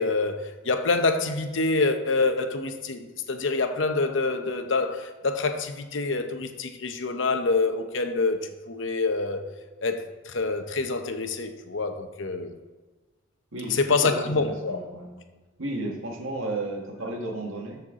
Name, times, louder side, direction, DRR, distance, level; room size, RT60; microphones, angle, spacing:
voice 1, 0.0-9.5 9.8-12.5 13.7-14.8, left 3 dB, 65° left, 7 dB, 0.8 m, -26 dB
voice 2, 13.5-15.2 15.6-17.8, right 2 dB, 85° right, 0 dB, 1.7 m, -33 dB
13.0 x 4.6 x 3.8 m, 1.3 s
head